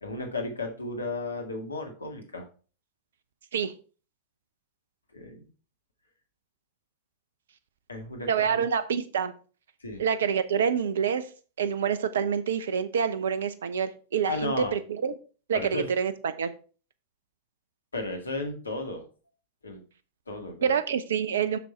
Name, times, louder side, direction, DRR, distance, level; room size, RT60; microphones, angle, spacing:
voice 1, 0.0-2.5 5.1-5.5 7.9-8.6 9.8-10.0 14.2-14.8 15.5-15.8 17.9-19.0 19.6-19.8 20.3-20.7, left 2 dB, 80° left, 4 dB, 1.8 m, -34 dB
voice 2, 8.3-9.3 10.0-11.3 11.6-15.1 15.5-16.5 20.6-21.6, right 7 dB, 65° right, 13 dB, 0.7 m, -27 dB
6.8 x 6.2 x 4.5 m, 0.37 s
figure-of-eight pair, 90°, 0 cm